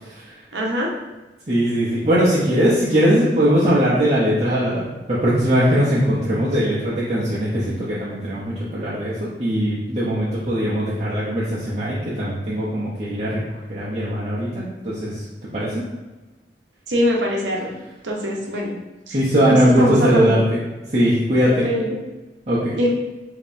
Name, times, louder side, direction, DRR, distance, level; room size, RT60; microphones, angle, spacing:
voice 1, 0.5-0.9 16.9-17.7 18.0-18.7 19.1-19.2 19.5-20.4 21.6-22.0 22.8-22.9, equal, 80° right, -2 dB, 0.8 m, -22 dB
voice 2, 1.5-15.2 15.5-15.8 19.1-20.6 20.9-21.7 22.5-22.8, equal, 35° right, -10 dB, 0.7 m, -20 dB
5.1 x 2.8 x 2.6 m, 1.1 s
head